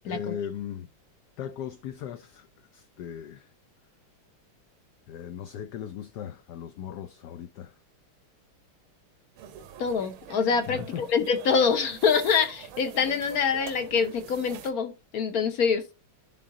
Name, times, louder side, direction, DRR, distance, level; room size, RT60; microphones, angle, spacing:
voice 1, 0.0-0.9 1.4-2.5 2.7-3.5 5.1-7.7 10.7-11.1, left 9 dB, 75° left, 0.9 m, -37 dB
sound 1, 9.4-14.7, right 8 dB, 85° right, 1.7 m, -44 dB
voice 2, 9.8-15.8, left 6 dB, 55° left, 1.1 m, -25 dB
10.0 x 3.8 x 3.7 m
omnidirectional pair, 2.3 m